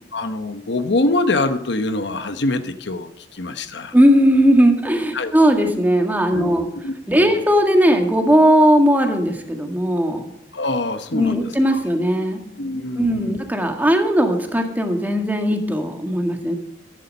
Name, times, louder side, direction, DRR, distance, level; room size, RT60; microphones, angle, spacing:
voice 1, 0.1-3.9 5.1-5.3 6.3-7.4 10.5-11.8 12.6-13.4, left 2 dB, 65° left, 9 dB, 1.0 m, -24 dB
voice 2, 3.9-6.7 7.1-10.2 11.1-12.4 13.0-16.5, equal, 10° right, 4 dB, 1.8 m, -17 dB
14.0 x 11.5 x 5.4 m, 0.85 s
head